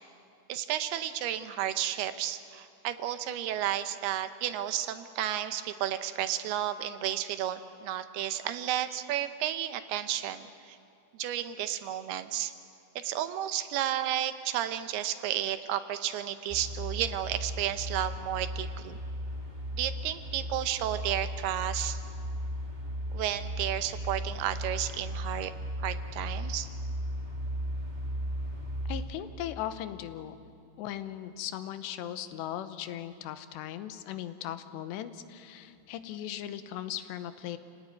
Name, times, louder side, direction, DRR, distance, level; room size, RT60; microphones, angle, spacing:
voice 1, 0.5-10.8 11.2-12.5 13.0-19.0 19.8-22.0 23.1-25.5 25.8-26.7, right 11 dB, 75° right, 10 dB, 2.7 m, -32 dB
sound 1, 16.5-29.0, equal, 20° right, 1.3 m, -36 dB
voice 2, 28.9-30.4 30.8-37.6, left 11 dB, 85° left, 11 dB, 3.1 m, -38 dB
28.5 x 17.5 x 9.5 m, 2.5 s
omnidirectional pair, 4.9 m